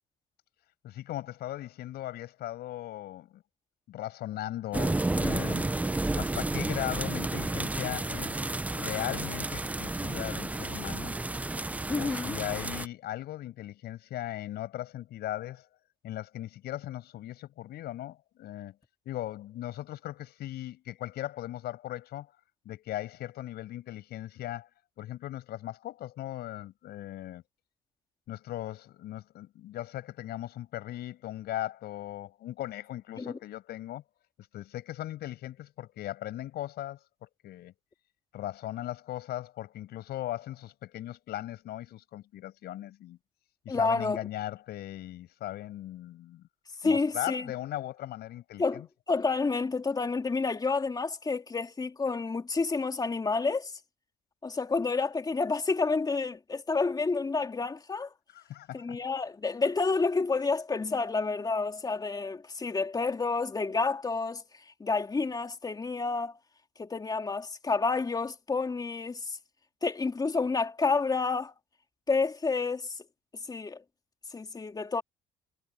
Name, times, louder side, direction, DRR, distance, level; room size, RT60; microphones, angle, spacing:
voice 1, 0.8-3.4 3.9-5.7 6.2-8.4 8.7-11.1 12.0-15.7 16.0-18.7 19.0-22.3 22.6-24.7 25.0-27.4 28.3-34.0 34.5-37.7 38.3-43.2 43.6-46.5 46.8-48.9 58.3-59.0, left 14 dB, 70° left, 6.4 m, -38 dB
sound 1, 4.7-12.9, right 2 dB, 10° right, 0.5 m, -31 dB
voice 2, 11.9-12.4 33.2-33.4 43.7-44.2 46.8-47.5 48.6-53.7 54.4-58.1 58.7-66.4 66.8-69.4 69.8-71.5 72.1-73.0 73.5-73.8 74.3-75.0, left 4 dB, 20° left, 2.8 m, -29 dB
cardioid pair, 110°, 17 cm